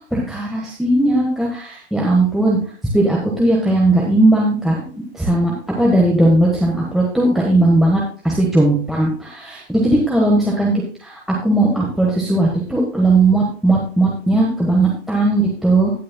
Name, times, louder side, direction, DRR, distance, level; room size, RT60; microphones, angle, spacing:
voice 1, 0.1-2.6 2.9-4.8 5.1-5.5 5.8-10.7 11.0-15.9, right 2 dB, ahead, -4 dB, 1.3 m, -17 dB
19.0 x 6.4 x 2.2 m, 0.42 s
hypercardioid pair, 155°, 35 cm